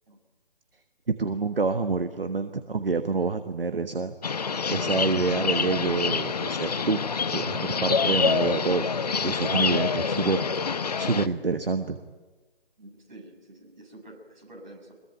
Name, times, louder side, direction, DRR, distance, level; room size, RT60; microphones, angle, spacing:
voice 1, 1.2-4.1 4.7-7.0 7.3-8.9 9.2-10.5 11.0-12.0, right 4 dB, 65° right, 10 dB, 1.4 m, -27 dB
sound 1, 4.2-11.3, left 5 dB, 40° left, 0.8 m, -26 dB
voice 2, 12.8-14.9, right 1 dB, 50° right, 2 dB, 6.9 m, -48 dB
23.5 x 22.0 x 9.3 m, 1.3 s
figure-of-eight pair, 150°, 30 cm